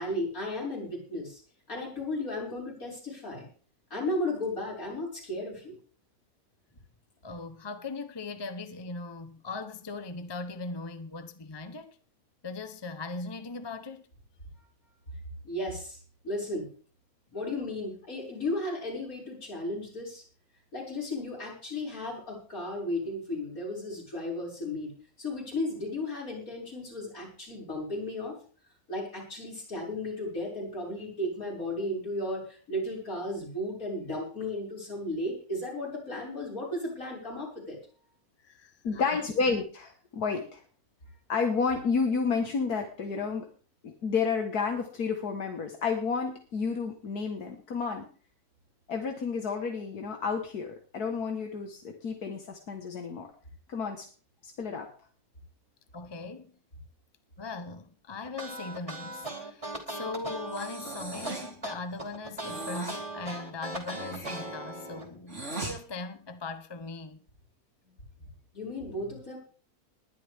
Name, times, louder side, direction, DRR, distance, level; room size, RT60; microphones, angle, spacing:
voice 1, 0.0-1.4 1.7-3.5 3.9-5.8 15.4-16.0 16.2-16.7 17.3-20.2 20.7-24.9 25.2-28.4 28.9-37.8 68.5-69.4, left 1 dB, 65° left, 6.7 m, -34 dB
voice 2, 7.2-12.0 12.4-14.1 38.4-39.2 55.9-56.6 57.4-67.2, left 3 dB, 20° left, 0.8 m, -39 dB
voice 3, 38.8-40.6 41.3-43.5 43.8-48.1 48.9-53.3 53.7-54.1 54.4-54.9, left 5 dB, 85° left, 2.0 m, -30 dB
sound 1, 58.2-65.0, right 2 dB, 20° right, 3.0 m, -39 dB
Breathing, 60.5-61.6 62.4-63.0 63.8-65.8, right 2 dB, 50° right, 3.4 m, -39 dB
20.5 x 11.0 x 3.6 m
omnidirectional pair, 1.6 m